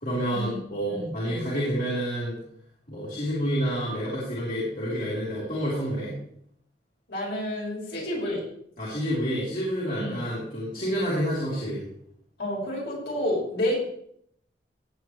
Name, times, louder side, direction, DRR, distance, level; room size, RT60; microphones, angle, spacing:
voice 1, 0.0-2.4 2.9-6.1 8.8-11.8, equal, 45° left, -8 dB, 4.3 m, -28 dB
voice 2, 0.9-1.4 7.1-8.4 9.9-10.2 12.4-13.7, left 1 dB, 65° left, -5 dB, 6.5 m, -30 dB
18.0 x 9.3 x 3.4 m, 0.68 s
head